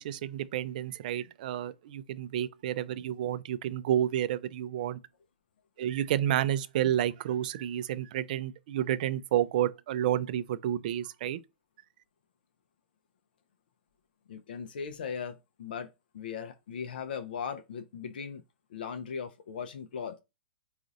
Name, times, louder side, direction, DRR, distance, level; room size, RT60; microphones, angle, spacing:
voice 1, 0.0-5.0 5.8-11.4, right 11 dB, 50° right, 0.4 m, -30 dB
voice 2, 14.3-18.4 18.7-20.2, left 6 dB, 60° left, 0.5 m, -38 dB
3.8 x 2.4 x 3.8 m
hypercardioid pair, 115°, 6 cm